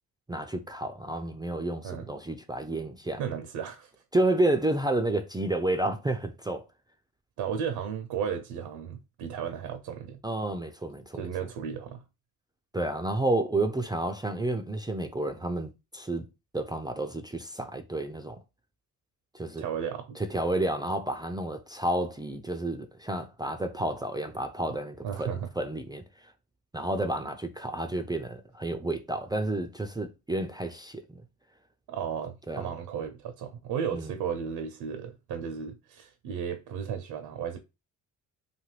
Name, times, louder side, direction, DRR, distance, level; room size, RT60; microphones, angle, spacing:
voice 1, 0.3-3.2 4.1-6.6 10.2-11.3 12.7-16.3 16.5-18.4 19.3-19.6 20.2-25.3 25.6-26.3 26.7-31.2 32.5-32.7 33.9-34.1, right 1 dB, 10° right, 0.3 m, -30 dB
voice 2, 3.2-3.9 7.4-10.2 11.1-12.0 19.6-20.2 25.0-25.5 31.9-37.6, right 7 dB, 60° right, 0.6 m, -34 dB
2.6 x 2.5 x 3.1 m
supercardioid pair, 55°, 43 cm